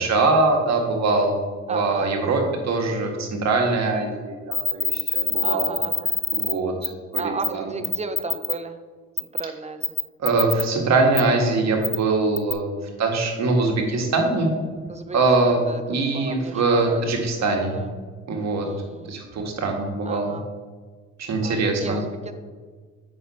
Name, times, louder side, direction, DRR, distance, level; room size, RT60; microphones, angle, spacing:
voice 1, 0.0-5.7 6.3-6.7 7.1-7.7 10.2-14.5 15.1-15.6 15.9-17.8 18.3-18.7 19.1-20.3 21.2-22.0, right 3 dB, 60° right, 2 dB, 1.7 m, -22 dB
voice 2, 1.7-2.5 5.4-6.1 7.2-8.8 9.3-10.0 14.9-15.2 15.4-17.1 17.7-18.1 18.6-19.1 20.0-20.5 21.4-22.3, right 3 dB, 20° right, 8 dB, 0.7 m, -34 dB
sound 1, 4.5-6.5 6.8-6.9 7.1-7.5 7.8-8.5 9.2-9.4 9.8-10.6 11.2-11.3 11.8-12.0 12.4-12.5, left 4 dB, 10° left, 0.5 m, -24 dB
8.0 x 6.0 x 4.2 m, 1.5 s
cardioid pair, 90°, 30 cm